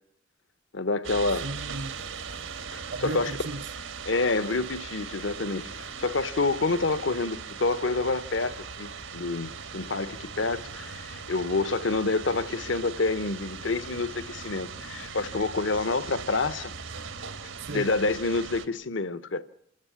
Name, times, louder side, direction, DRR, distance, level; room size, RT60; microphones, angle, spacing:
voice 1, 0.7-1.5 2.7-3.4 4.1-16.7 17.7-19.4, left 3 dB, 70° left, 1.1 m, -28 dB
sound 1, 1.0-18.7, right 5 dB, 90° right, 1.9 m, -39 dB
voice 2, 1.4-2.1 2.9-3.7 17.6-18.0, right 3 dB, 65° right, 0.9 m, -36 dB
28.0 x 13.5 x 10.0 m
head